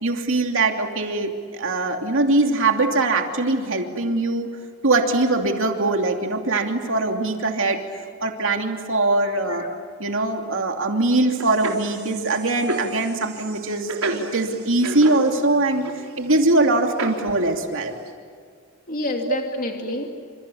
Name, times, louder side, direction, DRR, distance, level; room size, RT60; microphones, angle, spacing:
voice 1, 0.0-4.5 4.8-7.8 8.2-9.7 10.0-15.8 16.2-17.9 19.2-19.4 19.9-20.0, right 2 dB, 65° right, 3 dB, 2.9 m, -22 dB
voice 2, 9.3-9.7 18.9-20.2, left 1 dB, 40° left, 2 dB, 2.8 m, -29 dB
sound 1, 11.3-15.5 15.7-16.3 16.8-17.5 17.9-18.1, right 3 dB, 80° right, 3.9 m, -32 dB
29.5 x 28.0 x 7.2 m, 2.1 s
head